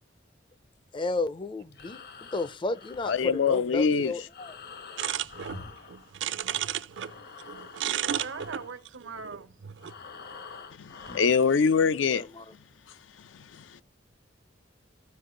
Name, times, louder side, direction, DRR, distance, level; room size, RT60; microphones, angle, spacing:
voice 1, 0.9-4.5 12.1-12.4, left 3 dB, 25° left, 0.4 m, -33 dB
Breathing, 1.6-6.6 6.9-11.5, left 5 dB, 55° left, 0.9 m, -47 dB
voice 2, 3.0-4.1 10.8-12.3 13.2-13.8, left 5 dB, 80° left, 0.5 m, -25 dB
sound 1, 5.0-7.1 7.4-9.9, right 10 dB, 70° right, 0.5 m, -32 dB
voice 3, 7.8-9.5, right 5 dB, 90° right, 0.9 m, -41 dB
14.0 x 5.0 x 3.8 m
head